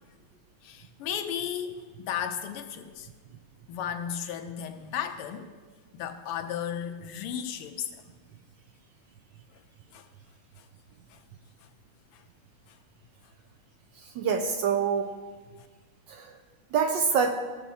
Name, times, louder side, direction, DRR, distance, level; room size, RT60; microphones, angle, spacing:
voice 1, 0.6-3.1 3.7-5.5 5.9-8.0 9.5-9.6 9.9-10.1 10.6-10.7 11.1-11.2 11.6-11.7 12.1-12.2 12.7-12.8 15.5-15.7, left 9 dB, 90° left, 7 dB, 1.6 m, -35 dB
voice 2, 14.0-15.1 16.1-16.3 16.7-17.3, right 6 dB, 70° right, 4 dB, 1.1 m, -26 dB
15.0 x 7.0 x 2.7 m, 1.4 s
omnidirectional pair, 2.4 m